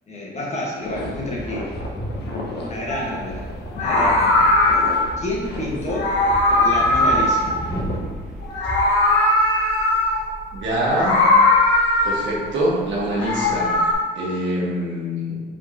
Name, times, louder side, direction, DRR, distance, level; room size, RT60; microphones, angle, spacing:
voice 1, 0.1-1.8 2.6-4.5 5.2-6.2 6.6-7.5, left 1 dB, 35° left, -4 dB, 1.3 m, -29 dB
sound 1, 0.8-8.0, left 2 dB, 60° left, 0.8 m, -34 dB
sound 2, 0.9-8.8, right 1 dB, ahead, 1.2 m, -34 dB
Meow, 2.9-3.1 3.7-5.2 5.9-8.1 8.4-10.3 10.9-12.4 13.0-13.9, left 2 dB, 85° left, 1.1 m, -19 dB
voice 2, 10.5-11.3 12.0-13.8 14.1-15.4, right 1 dB, 70° right, -5 dB, 1.4 m, -24 dB
4.8 x 3.7 x 2.8 m, 1.4 s
cardioid pair, 90°, 20 cm